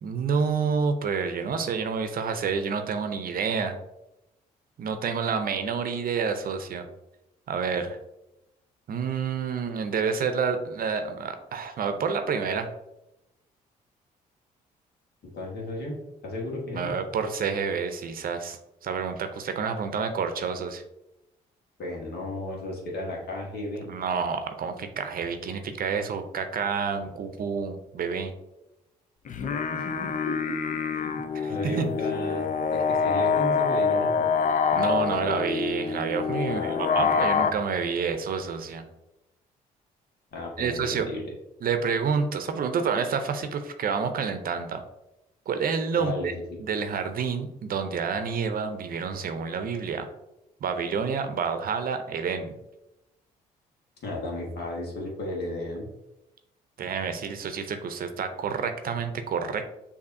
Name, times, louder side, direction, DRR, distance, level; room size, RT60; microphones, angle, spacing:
voice 1, 0.0-3.7 4.8-6.9 7.5-8.0 8.9-12.7 16.7-20.8 23.9-28.3 31.3-31.8 34.7-38.9 40.6-41.1 41.6-44.8 45.5-46.3 46.6-50.1 50.6-52.5 56.8-59.6, right 5 dB, 55° right, 8 dB, 0.6 m, -29 dB
voice 2, 15.3-16.0 16.2-17.0 21.8-23.9 29.7-30.6 30.9-34.3 36.5-37.5 40.3-41.3 46.0-46.6 54.0-55.9, left 1 dB, 65° left, -1 dB, 1.4 m, -34 dB
sound 1, 29.3-37.5, left 6 dB, 45° left, 0.4 m, -26 dB
6.6 x 2.7 x 2.6 m, 0.93 s
hypercardioid pair, 55°, 18 cm